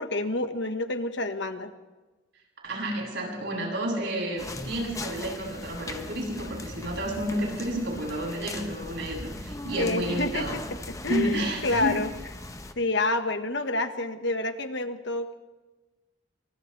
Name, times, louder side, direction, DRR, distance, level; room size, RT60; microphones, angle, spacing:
voice 1, 0.0-1.7 9.8-10.6 10.9-12.1 12.7-15.3, left 2 dB, 65° left, 7 dB, 1.6 m, -28 dB
voice 2, 2.6-10.6 11.1-12.0, right 1 dB, 65° right, -2 dB, 7.8 m, -31 dB
sound 1, 4.4-12.7, left 2 dB, 15° left, 1.2 m, -39 dB
30.0 x 25.0 x 3.4 m, 1.2 s
head